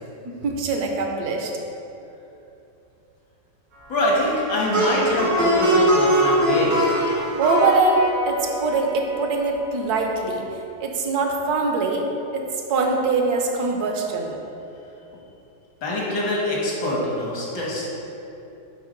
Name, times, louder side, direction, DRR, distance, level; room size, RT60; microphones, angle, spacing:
voice 1, 0.2-1.5 7.4-10.4 10.8-12.4 12.7-14.4, right 3 dB, 65° right, 2 dB, 1.3 m, -23 dB
voice 2, 3.9-6.8 15.8-17.9, left 1 dB, 80° left, -4 dB, 2.0 m, -24 dB
Plucked string instrument, 4.2-9.4, right 1 dB, 85° right, 2.2 m, -22 dB
8.3 x 3.8 x 5.1 m, 2.9 s
omnidirectional pair, 1.9 m